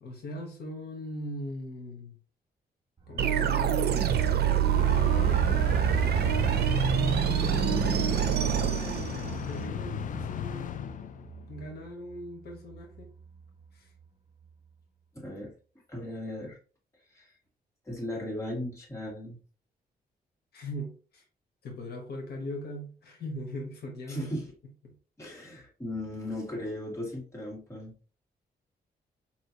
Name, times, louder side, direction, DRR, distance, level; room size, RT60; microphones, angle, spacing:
voice 1, 0.0-2.2 3.1-6.2 7.2-11.1 11.5-13.1 13.7-13.9 20.5-21.2 21.6-24.3 24.8-24.9 25.2-25.4, left 1 dB, 75° left, 1.1 m, -40 dB
sound 1, 3.0-13.7 14.0-14.1 14.4-14.5, right 6 dB, 25° right, 1.1 m, -39 dB
sound 2, 3.2-9.6, right 9 dB, 75° right, 0.6 m, -26 dB
sound 3, 4.7-11.5, left 10 dB, 55° left, 0.4 m, -36 dB
voice 2, 15.1-15.5 15.9-16.6 17.1-17.3 17.9-19.4 24.1-24.4 25.2-27.9, left 1 dB, 15° left, 2.1 m, -37 dB
4.5 x 3.0 x 2.8 m
cardioid pair, 105°, 17 cm